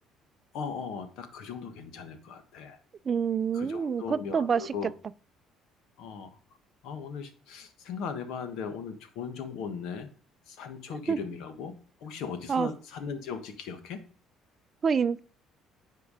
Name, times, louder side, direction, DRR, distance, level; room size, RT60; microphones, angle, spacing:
voice 1, 0.5-2.8 3.5-4.9 6.0-6.4 6.8-10.1 10.5-11.7 12.0-14.0, left 6 dB, 75° left, 1.4 m, -38 dB
voice 2, 3.1-4.7 11.1-11.2 12.5-12.7 14.8-15.2, right 6 dB, 40° right, 0.4 m, -27 dB
9.8 x 4.6 x 4.9 m
supercardioid pair, 80°, 0 cm